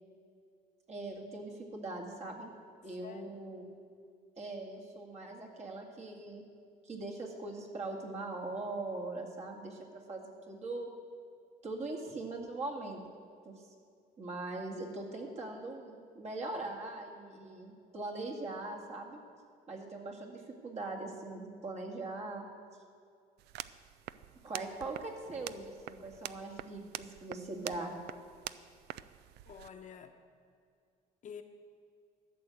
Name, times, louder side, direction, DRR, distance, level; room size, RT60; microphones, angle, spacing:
voice 1, 0.9-2.5 2.8-3.7 4.4-6.4 6.8-10.9 11.6-13.0 13.4-13.7 14.2-19.2 19.7-22.5 24.4-27.9, right 2 dB, 40° right, 0 dB, 2.1 m, -41 dB
voice 2, 3.0-3.5 29.5-30.1 31.2-31.4, left 7 dB, 45° left, 5 dB, 0.9 m, -48 dB
sound 1, 23.4-29.7, right 14 dB, 80° right, 0.4 m, -46 dB
13.0 x 6.4 x 8.2 m, 2.3 s
cardioid pair, 110°, 17 cm